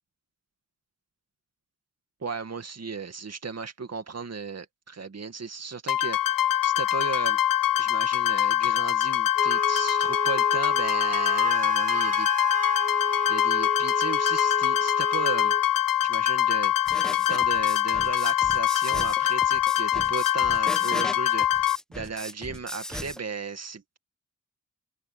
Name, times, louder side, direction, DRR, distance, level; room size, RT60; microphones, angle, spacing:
voice 1, 2.2-7.4 7.8-12.3 13.0-15.5 16.0-16.7 17.3-24.0, right 5 dB, 45° right, 2.2 m, -36 dB
sound 1, 5.9-21.8, left 12 dB, 75° left, 0.6 m, -24 dB
Wind instrument woodwind instrument, 9.4-15.6, right 5 dB, 25° right, 0.4 m, -33 dB
sound 2, 16.9-23.2, equal, ahead, 1.0 m, -38 dB
cardioid pair, 50°, 34 cm